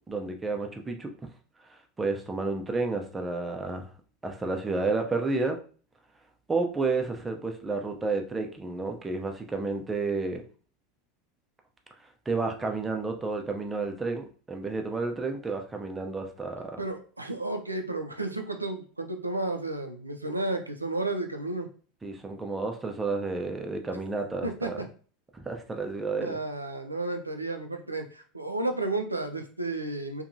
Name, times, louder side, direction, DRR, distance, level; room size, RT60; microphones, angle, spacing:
voice 1, 0.1-1.3 1.7-3.9 4.2-5.6 6.5-10.4 12.3-16.8 22.0-24.8 25.3-26.4, right 3 dB, 15° right, 3 dB, 0.5 m, -31 dB
voice 2, 16.8-21.7 24.4-24.9 26.2-30.2, right 2 dB, 90° right, 5 dB, 0.4 m, -32 dB
2.7 x 2.3 x 2.6 m, 0.40 s
figure-of-eight pair, 80°, 0 cm